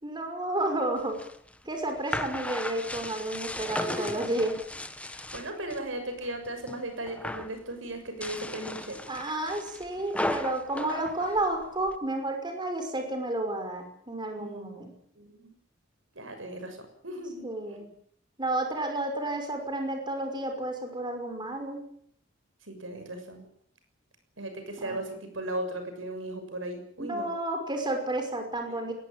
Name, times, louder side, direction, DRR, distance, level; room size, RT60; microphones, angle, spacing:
voice 1, 0.0-1.2 1.7-4.6 9.1-14.9 17.4-17.9 18.4-21.8 24.8-25.0 27.0-28.9, right 1 dB, 25° right, 5 dB, 5.7 m, -31 dB
sound 1, 1.0-5.9 6.2-6.8 7.1-7.6 8.1-12.0, left 1 dB, 5° left, 1.4 m, -36 dB
voice 2, 3.7-4.2 5.1-9.0 14.4-14.7 15.2-15.5 16.1-17.8 22.6-23.4 24.4-27.3 28.7-28.8, right 1 dB, 80° right, 7 dB, 6.7 m, -37 dB
22.0 x 19.0 x 9.1 m, 0.65 s
head